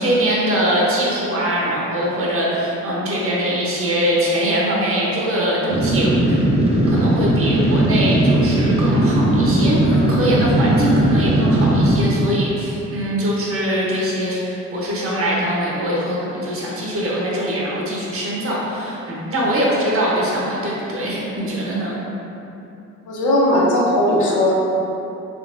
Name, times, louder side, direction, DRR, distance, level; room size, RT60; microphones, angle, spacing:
voice 1, 0.0-6.4 6.9-22.0, right 1 dB, 45° right, -5 dB, 0.9 m, -22 dB
sound 1, 5.7-12.1, right 1 dB, 20° right, 0.5 m, -17 dB
voice 2, 23.1-24.5, left 1 dB, 70° left, -4 dB, 0.8 m, -17 dB
3.7 x 2.8 x 2.5 m, 3.0 s
cardioid pair, 85°, 31 cm